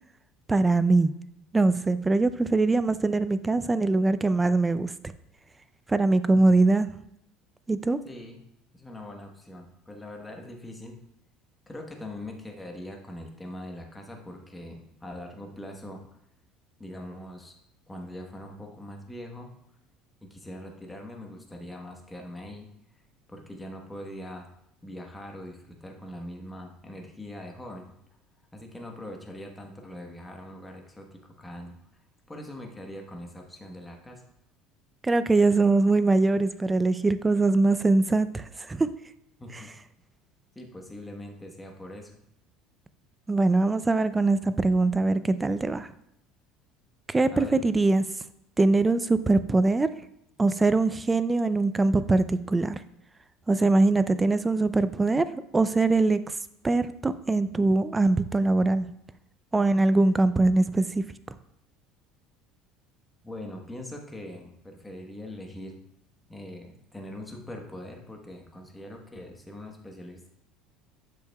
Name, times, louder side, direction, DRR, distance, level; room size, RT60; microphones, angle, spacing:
voice 1, 0.5-1.1 1.5-4.9 5.9-6.9 7.7-8.0 35.0-38.9 43.3-45.9 47.1-48.0 48.6-49.9 50.4-52.8 53.5-55.3 55.5-56.2 56.6-58.9 59.5-61.0, right 3 dB, 15° right, 13 dB, 0.4 m, -22 dB
voice 2, 8.0-8.4 8.7-11.0 11.7-16.2 16.8-17.6 17.9-19.5 20.2-22.7 23.3-24.5 24.8-27.9 28.5-31.7 32.3-34.2 39.4-39.7 40.5-42.1 47.3-47.6 63.2-65.7 66.3-70.3, left 1 dB, 10° left, 2 dB, 1.2 m, -42 dB
8.1 x 6.6 x 2.3 m, 0.78 s
supercardioid pair, 120°, 0 cm